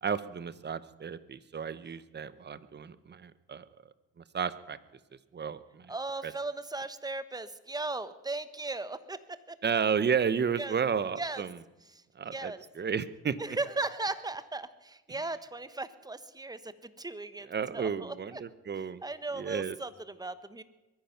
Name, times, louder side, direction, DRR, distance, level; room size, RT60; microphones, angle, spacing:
voice 1, 0.0-3.7 4.2-4.8 5.3-5.9 6.2-6.3 9.6-11.6 12.1-13.4 17.5-19.0 19.3-19.8, right 6 dB, 35° right, 16 dB, 0.9 m, -32 dB
voice 2, 5.9-9.6 10.6-10.8 11.2-11.4 11.9-12.0 12.3-12.6 13.4-17.5 17.7-18.4 19.0-20.6, right 3 dB, 15° right, 13 dB, 1.0 m, -37 dB
22.5 x 10.5 x 5.9 m, 1.0 s
cardioid pair, 90°, 30 cm